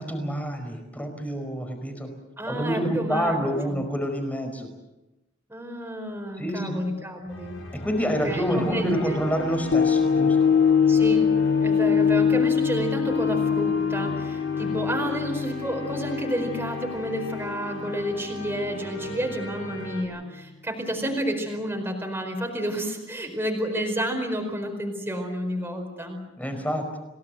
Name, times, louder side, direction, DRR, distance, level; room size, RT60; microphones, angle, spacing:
voice 1, 0.0-2.1 2.5-4.7 6.4-6.8 7.7-10.4 26.4-27.0, equal, 10° left, 5 dB, 5.0 m, -27 dB
voice 2, 2.4-3.4 3.7-3.8 5.5-7.6 8.2-9.2 10.9-11.3 11.6-26.2, equal, 10° right, 2 dB, 4.7 m, -30 dB
sound 1, 7.3-20.0, left 2 dB, 75° left, 7.4 m, -38 dB
sound 2, 9.7-18.1 18.6-18.7, left 6 dB, 50° left, 0.9 m, -23 dB
29.0 x 18.0 x 7.8 m, 0.98 s
head